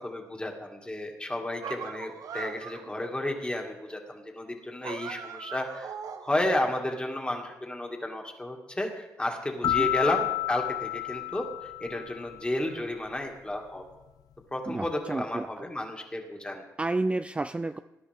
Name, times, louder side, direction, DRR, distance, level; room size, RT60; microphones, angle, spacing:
voice 1, 0.0-5.9 6.2-13.8 14.5-16.6, left 1 dB, 15° left, 2 dB, 2.4 m, -32 dB
sound 1, 1.6-2.9 4.8-6.6, right 7 dB, 75° right, 0.8 m, -40 dB
sound 2, 9.6-12.4, left 16 dB, 80° left, 0.6 m, -30 dB
voice 2, 14.7-15.5 16.8-17.8, right 2 dB, 20° right, 11 dB, 0.4 m, -30 dB
20.0 x 10.5 x 3.6 m, 1.1 s
cardioid pair, 60°, 6 cm